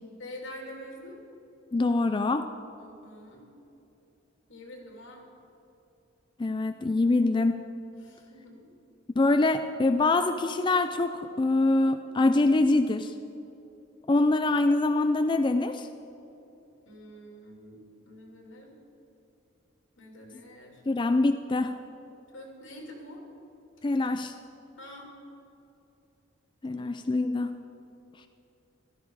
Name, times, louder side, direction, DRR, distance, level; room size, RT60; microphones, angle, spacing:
voice 1, 0.2-1.2 2.8-3.5 4.5-5.2 8.0-8.7 14.1-14.3 16.8-18.7 20.0-20.8 22.3-23.2 24.8-25.1 26.7-27.0, left 1 dB, 80° left, 0 dB, 2.9 m, -46 dB
voice 2, 1.7-2.5 6.4-7.6 9.2-13.1 14.1-15.9 20.9-21.7 23.8-24.3 26.6-27.5, left 2 dB, 25° left, 8 dB, 0.4 m, -24 dB
15.0 x 12.5 x 4.7 m, 2.9 s
head